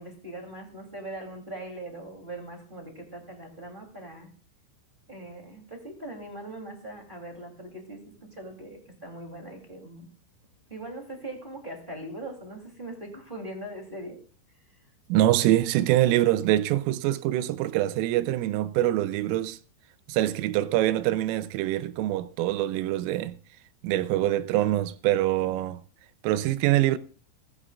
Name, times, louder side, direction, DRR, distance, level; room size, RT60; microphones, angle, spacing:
voice 1, 0.0-4.3 5.1-10.1 10.7-14.2, right 1 dB, 15° right, 2.2 m, -41 dB
voice 2, 15.1-19.6 20.1-23.4 23.8-25.8 26.2-27.0, right 14 dB, 85° right, 3.3 m, -24 dB
20.0 x 13.0 x 2.5 m
omnidirectional pair, 5.8 m